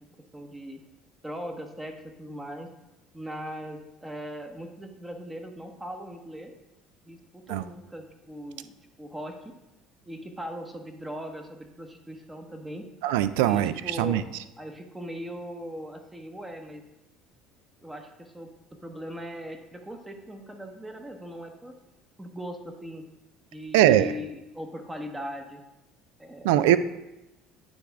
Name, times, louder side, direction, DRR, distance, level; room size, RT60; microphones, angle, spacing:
voice 1, 0.3-0.8 1.2-2.7 3.1-6.5 7.1-9.5 10.1-12.9 13.4-14.3 14.6-16.8 17.8-18.5 18.8-21.7 22.2-23.0 23.5-25.6 26.2-26.7, equal, 10° right, 5 dB, 0.9 m, -39 dB
voice 2, 13.0-14.2 23.7-24.1 26.4-26.8, right 13 dB, 85° right, 14 dB, 0.3 m, -21 dB
9.3 x 3.5 x 3.5 m, 0.94 s
supercardioid pair, 90°, 0 cm